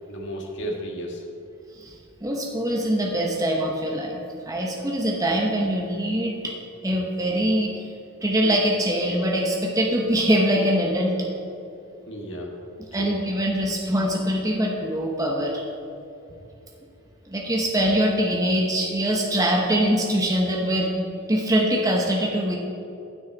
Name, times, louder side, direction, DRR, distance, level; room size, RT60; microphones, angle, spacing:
voice 1, 0.1-1.2 12.1-12.5 12.9-13.2 16.2-16.4, right 1 dB, 60° left, 0 dB, 1.8 m, -33 dB
voice 2, 2.2-4.2 4.5-6.5 6.8-7.8 8.2-11.3 12.9-15.6 17.3-21.0 21.3-22.6, equal, 15° right, -1 dB, 1.0 m, -23 dB
15.5 x 6.3 x 4.1 m, 2.7 s
head